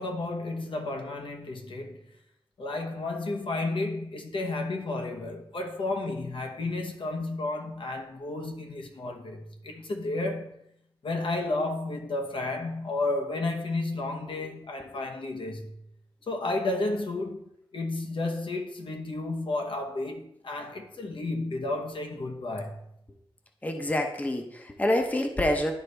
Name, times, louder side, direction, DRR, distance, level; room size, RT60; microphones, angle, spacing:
voice 1, 0.0-2.1 2.6-10.6 11.0-15.7 16.3-22.8, left 2 dB, 65° left, 1.0 m, -32 dB
voice 2, 23.6-25.7, left 1 dB, 15° left, 0.7 m, -27 dB
11.5 x 4.0 x 3.3 m
wide cardioid pair, 95°, 9 cm